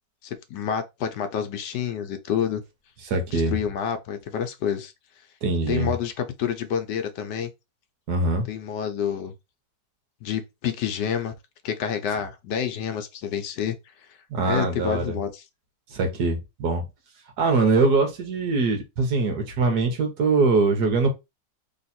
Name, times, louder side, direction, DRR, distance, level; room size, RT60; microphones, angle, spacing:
voice 1, 0.2-2.6 3.3-4.9 5.7-7.5 8.5-9.3 10.2-11.3 11.6-13.8 14.5-15.4, left 8 dB, 80° left, 1.4 m, -28 dB
voice 2, 3.1-3.5 5.4-5.9 8.1-8.5 14.3-15.2 15.9-16.9 17.4-21.1, right 3 dB, 70° right, 1.6 m, -22 dB
3.4 x 3.2 x 4.2 m
omnidirectional pair, 1.9 m